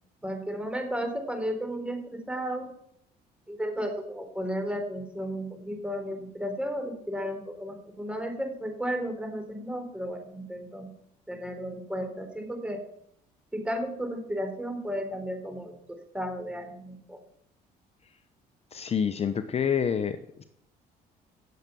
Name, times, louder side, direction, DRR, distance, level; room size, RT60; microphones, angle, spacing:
voice 1, 0.2-2.7 3.5-10.9 11.3-12.8 13.5-17.2, equal, 5° right, 5 dB, 4.0 m, -34 dB
voice 2, 18.7-20.4, left 7 dB, 35° left, 10 dB, 0.9 m, -28 dB
17.5 x 7.4 x 7.0 m, 0.72 s
cardioid pair, 110°, 17 cm